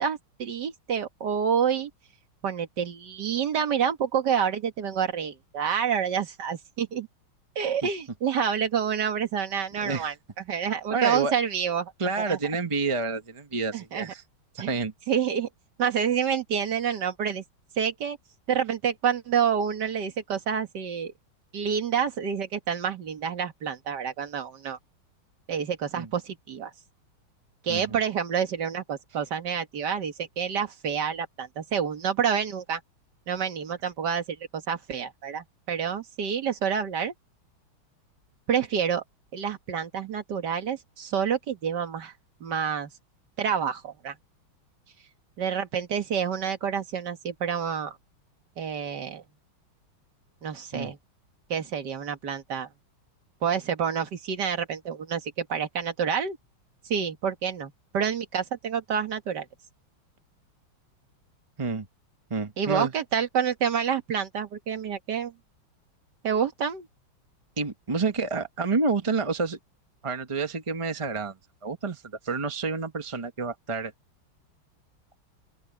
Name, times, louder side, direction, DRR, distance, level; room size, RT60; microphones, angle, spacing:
voice 1, 0.0-1.9 2.4-7.1 7.6-10.1 10.5-11.9 12.2-12.4 13.7-14.1 14.6-14.7 15.1-15.5 15.8-17.4 17.8-18.2 18.5-21.1 21.5-24.8 25.5-26.7 27.6-32.8 33.3-37.1 38.5-39.0 39.3-42.1 42.4-42.9 43.4-44.1 45.4-48.0 48.6-49.2 50.4-51.0 51.5-52.7 53.4-56.4 56.8-59.5 62.6-65.3 66.2-66.9, right 7 dB, 55° right, 2.2 m, -28 dB
voice 2, 9.8-10.1 10.9-11.3 12.0-14.2 14.5-14.9 26.0-26.1 27.7-28.0 50.7-50.9 61.6-61.9 62.3-62.9 67.6-69.6 70.0-71.3 71.6-73.9, right 4 dB, 30° right, 0.6 m, -29 dB
open air
omnidirectional pair, 2.3 m